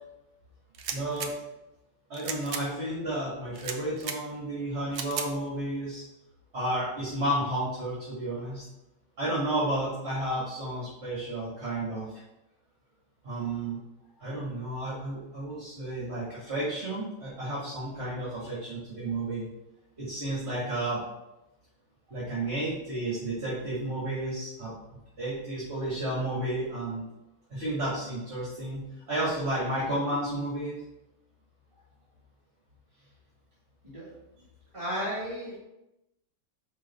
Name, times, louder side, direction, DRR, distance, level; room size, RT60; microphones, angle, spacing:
sound 1, 0.7-1.3 2.1-2.6 3.6-4.2 4.9-5.3, right 7 dB, 70° right, 1.1 m, -35 dB
voice 1, 0.9-1.3 2.1-6.0 6.5-8.6 9.2-12.1 13.2-13.8 14.2-19.5 20.0-21.0 22.1-24.7 25.2-27.0 27.5-30.8, right 1 dB, 35° right, -8 dB, 2.0 m, -32 dB
voice 2, 34.7-35.6, equal, 20° right, -10 dB, 1.7 m, -33 dB
5.3 x 3.8 x 5.4 m, 0.93 s
omnidirectional pair, 1.9 m